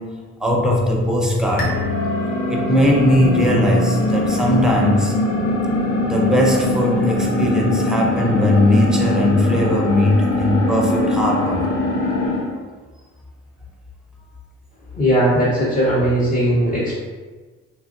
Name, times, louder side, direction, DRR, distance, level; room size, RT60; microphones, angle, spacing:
voice 1, 0.0-1.9 2.5-5.2 6.0-11.7, left 1 dB, ahead, -1 dB, 0.5 m, -19 dB
sound 1, 1.6-12.5, left 1 dB, 90° left, 0.8 m, -22 dB
voice 2, 15.0-17.0, equal, 25° left, -8 dB, 0.8 m, -18 dB
3.0 x 2.4 x 2.5 m, 1.3 s
cardioid pair, 90°, 30 cm